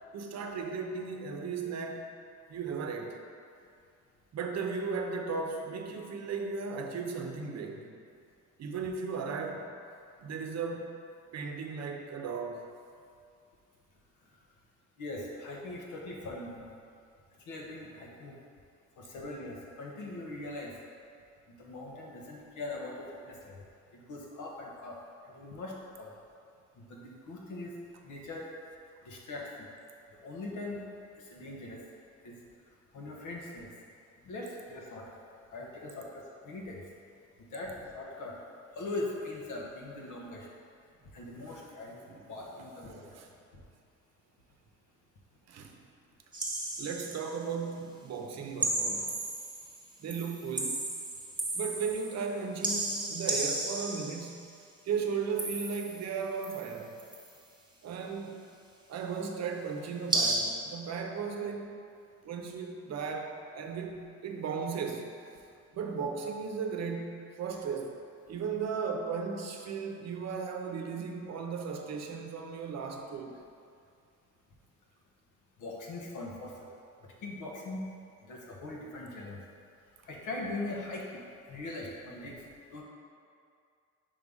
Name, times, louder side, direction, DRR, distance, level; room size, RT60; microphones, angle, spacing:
voice 1, 0.1-2.1 2.5-3.2 4.3-7.9 8.6-9.7 10.2-10.9 11.3-12.7 42.1-42.3 42.6-42.7 43.1-43.3 45.5-45.8 46.8-49.1 50.0-50.9 51.5-54.5 54.8-57.0 57.8-58.4 58.9-61.8 62.2-65.1 65.7-73.4, right 5 dB, 60° right, 3 dB, 0.7 m, -36 dB
voice 2, 15.0-16.6 17.5-18.4 19.0-20.7 21.6-23.5 24.1-25.0 25.3-26.1 26.8-27.7 28.0-28.5 29.0-29.7 30.2-30.8 31.1-31.8 32.2-32.3 32.9-33.7 34.2-35.0 35.5-36.8 37.5-38.3 38.7-40.5 41.1-42.0 42.3-43.0 43.5-43.6 75.6-76.5 77.2-77.9 78.2-79.4 80.1-81.2 81.5-82.3 82.7-82.8, left 2 dB, 80° left, -2 dB, 1.2 m, -41 dB
sound 1, 46.3-47.3 48.6-49.8 50.1-52.3 52.6-54.4 55.4-56.1 56.4-57.3 60.1-60.4, right 2 dB, 15° right, 1.1 m, -33 dB
5.3 x 3.5 x 5.3 m, 2.4 s
cardioid pair, 90°, 30 cm